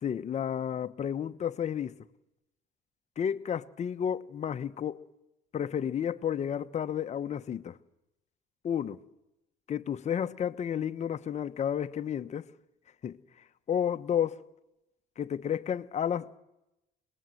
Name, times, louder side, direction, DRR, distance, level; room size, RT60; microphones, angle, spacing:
voice 1, 0.0-2.0 3.2-5.0 5.5-7.8 8.6-9.0 9.7-12.5 13.0-13.2 13.7-14.4 15.2-16.4, left 9 dB, 45° left, 1.0 m, -31 dB
27.5 x 20.5 x 7.8 m
cardioid pair, 110°, 17 cm